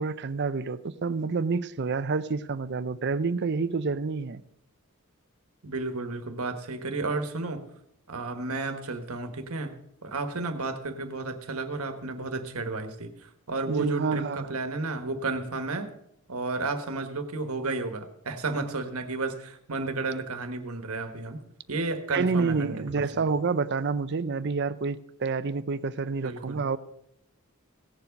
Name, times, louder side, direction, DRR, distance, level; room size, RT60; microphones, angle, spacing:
voice 1, 0.0-4.4 13.7-14.5 22.1-26.8, right 4 dB, 50° right, 14 dB, 0.6 m, -28 dB
voice 2, 5.6-7.6 8.1-9.7 10.0-15.9 16.3-21.4 21.7-22.8 23.1-23.2 26.2-26.6, right 3 dB, 80° right, 8 dB, 1.4 m, -32 dB
16.5 x 7.2 x 5.2 m, 0.78 s
head